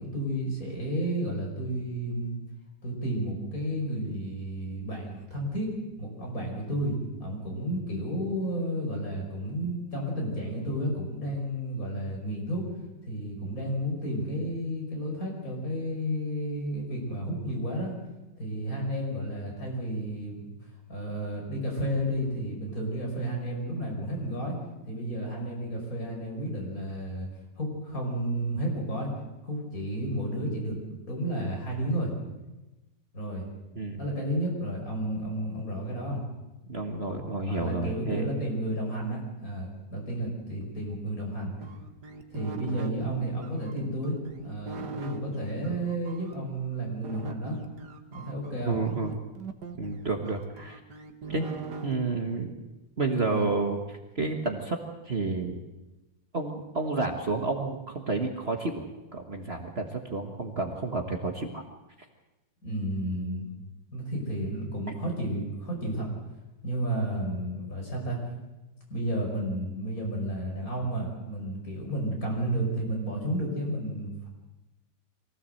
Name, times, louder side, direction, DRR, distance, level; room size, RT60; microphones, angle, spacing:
voice 1, 0.0-2.4 2.8-12.7 13.1-17.9 18.4-20.5 20.9-24.6 24.9-27.3 27.6-29.1 29.4-30.8 31.1-32.1 33.1-33.5 34.0-36.2 37.4-41.5 42.3-44.2 44.4-47.6 48.1-48.8 53.2-53.5 62.6-63.5 63.9-66.1 66.6-68.2 68.9-74.3, right 1 dB, 50° left, 0 dB, 5.9 m, -32 dB
voice 2, 33.7-34.1 36.7-38.3 48.7-49.2 49.8-50.8 51.3-51.5 51.8-52.6 53.0-54.8 55.0-55.6 56.3-58.8 59.1-61.6, right 3 dB, 35° right, 3 dB, 1.6 m, -30 dB
sound 1, 41.6-46.3 47.0-51.9, right 3 dB, 70° right, 1.9 m, -41 dB
23.5 x 16.0 x 7.7 m, 1.0 s
omnidirectional pair, 2.0 m